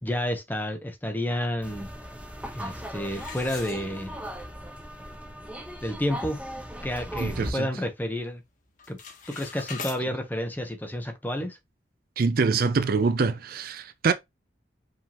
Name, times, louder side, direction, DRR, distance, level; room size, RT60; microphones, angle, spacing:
voice 1, 0.0-1.9 2.5-4.1 5.8-6.4 6.8-8.4 8.9-9.0 9.3-11.6, left 1 dB, 10° left, 1.0 m, -30 dB
sound 1, 1.6-7.5, equal, 10° right, 0.9 m, -38 dB
sound 2, 3.1-4.4 4.9-5.0 5.5-5.6 6.0-6.3 6.7-7.9 8.1-8.5 8.7-10.0, left 5 dB, 45° left, 1.2 m, -41 dB
voice 2, 7.2-7.7 12.2-14.1, right 4 dB, 55° right, 0.4 m, -24 dB
4.9 x 3.7 x 2.9 m
head